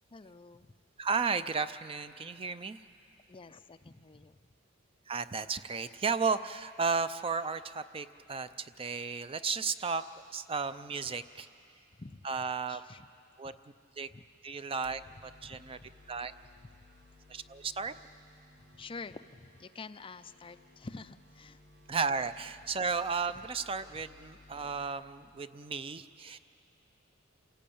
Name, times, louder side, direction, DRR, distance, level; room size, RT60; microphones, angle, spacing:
voice 1, 0.1-0.7 3.3-4.4 12.0-12.2 12.7-13.1 13.4-13.6 14.1-14.3 15.4-15.9 18.7-21.6 23.4-23.5, left 3 dB, 25° left, 11 dB, 0.5 m, -48 dB
voice 2, 1.0-2.8 5.1-10.1 10.3-11.5 12.2-12.8 13.4-13.5 14.0-14.1 14.4-15.8 16.1-16.3 17.3-17.9 21.9-26.4, right 5 dB, 25° right, 12 dB, 0.5 m, -34 dB
sound 1, 14.8-24.8, left 2 dB, 60° right, 3.8 m, -60 dB
28.0 x 17.5 x 8.6 m, 2.5 s
head